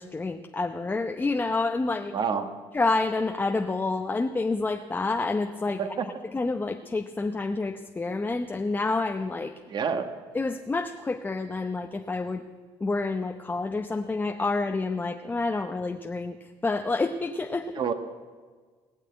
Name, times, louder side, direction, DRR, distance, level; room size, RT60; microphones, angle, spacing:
voice 1, 0.0-2.2 2.7-5.8 6.3-9.5 10.3-12.4 12.8-17.8, left 3 dB, 20° left, 5 dB, 0.7 m, -28 dB
voice 2, 2.1-2.5 5.7-6.1 9.7-10.1 17.8-17.9, right 6 dB, 45° right, 8 dB, 1.4 m, -28 dB
19.0 x 6.6 x 9.5 m, 1.5 s
cardioid pair, 95°, 10 cm